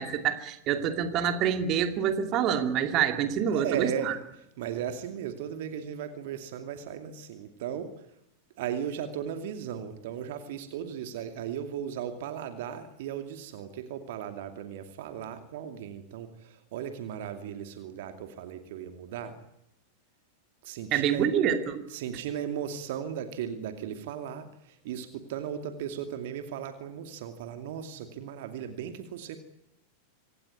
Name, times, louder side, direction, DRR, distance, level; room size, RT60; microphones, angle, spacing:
voice 1, 0.0-4.1 20.9-21.8, right 8 dB, 35° right, 8 dB, 2.7 m, -27 dB
voice 2, 3.2-8.1 8.6-19.4 20.6-21.4 21.9-29.4, right 9 dB, 55° right, 8 dB, 2.4 m, -36 dB
26.0 x 18.0 x 9.6 m, 0.83 s
figure-of-eight pair, 90°, 0 cm